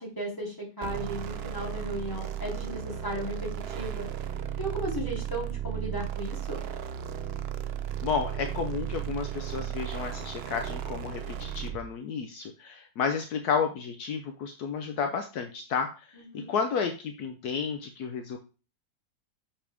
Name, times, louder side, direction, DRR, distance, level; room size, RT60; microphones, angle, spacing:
voice 1, 0.0-4.1 4.6-6.6 16.1-16.5, right 1 dB, 10° left, -4 dB, 3.0 m, -35 dB
sound 1, 0.8-11.9, right 9 dB, 70° right, 0.5 m, -35 dB
voice 2, 8.0-16.1 16.3-18.4, left 6 dB, 75° left, 6 dB, 1.2 m, -32 dB
6.5 x 6.0 x 3.4 m, 0.34 s
omnidirectional pair, 1.7 m